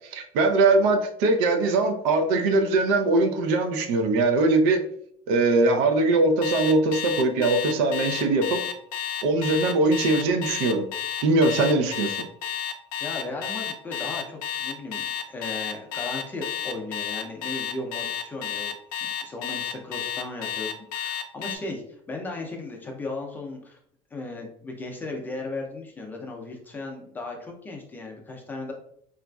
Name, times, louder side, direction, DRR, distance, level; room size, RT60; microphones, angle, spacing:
voice 1, 0.1-4.8 5.3-8.6 9.2-10.9 11.2-12.3, right 2 dB, 85° right, 6 dB, 0.5 m, -21 dB
Alarm, 6.4-21.6, left 8 dB, 70° left, 0.4 m, -31 dB
voice 2, 13.0-18.7 19.0-21.8 22.1-23.8 24.1-28.7, left 2 dB, 10° left, 1 dB, 0.4 m, -36 dB
3.9 x 2.4 x 2.2 m, 0.67 s
cardioid pair, 165°, 16 cm